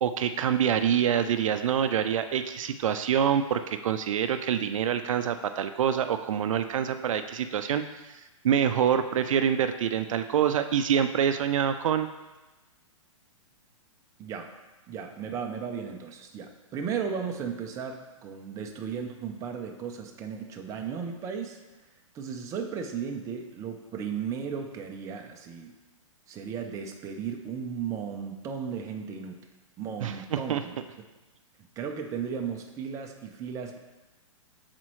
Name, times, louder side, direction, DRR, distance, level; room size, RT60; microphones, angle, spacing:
voice 1, 0.0-8.1 8.4-12.1 30.0-30.6, right 8 dB, 70° right, 9 dB, 0.4 m, -26 dB
voice 2, 14.2-14.5 14.9-21.6 22.1-25.7 26.3-29.5 29.8-30.8 31.8-33.8, right 6 dB, 20° right, 3 dB, 0.5 m, -35 dB
7.3 x 4.1 x 3.1 m, 1.1 s
hypercardioid pair, 135°, 17 cm